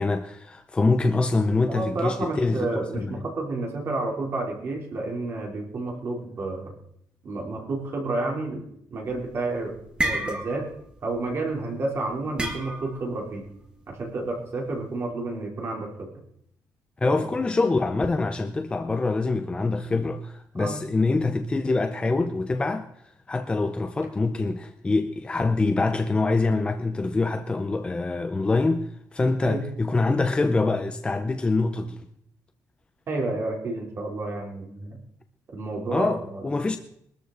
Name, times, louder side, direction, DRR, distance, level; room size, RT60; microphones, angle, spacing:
voice 1, 0.0-3.2 17.0-22.9 23.3-32.0 35.9-36.8, left 3 dB, 15° left, 0.6 m, -25 dB
voice 2, 1.7-6.7 7.2-9.7 10.0-10.7 11.0-13.4 13.9-16.1 17.0-17.2 20.6-20.8 29.4-29.6 33.1-35.0 35.5-36.4, right 2 dB, 40° right, 3.4 m, -30 dB
sound 1, 9.1-9.4 9.7-10.8 11.1-11.4 12.4-13.1, right 1 dB, 15° right, 2.0 m, -29 dB
22.0 x 13.5 x 3.9 m
cardioid pair, 170°, 7 cm